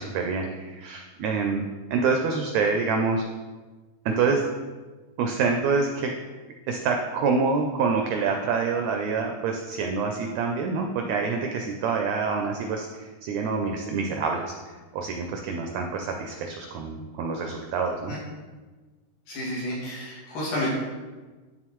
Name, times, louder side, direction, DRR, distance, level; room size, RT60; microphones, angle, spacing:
voice 1, 0.0-1.6 1.9-3.2 4.0-4.5 5.2-6.1 6.7-18.1, right 4 dB, 80° right, 3 dB, 1.6 m, -26 dB
voice 2, 19.3-20.7, left 1 dB, 80° left, -8 dB, 3.8 m, -31 dB
10.5 x 3.7 x 3.0 m, 1.3 s
omnidirectional pair, 3.7 m